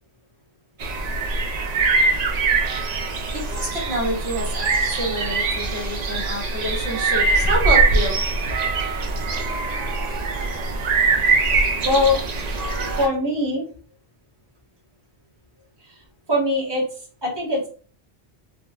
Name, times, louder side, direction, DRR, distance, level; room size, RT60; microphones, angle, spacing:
sound 1, 0.8-13.1, right 3 dB, 55° right, 0.5 m, -22 dB
voice 1, 3.3-8.2, right 1 dB, 75° right, -3 dB, 1.3 m, -28 dB
voice 2, 11.6-12.2 13.0-13.7 16.3-16.8 17.2-17.7, left 2 dB, 25° right, -3 dB, 1.1 m, -22 dB
3.5 x 2.2 x 2.3 m, 0.41 s
omnidirectional pair, 1.1 m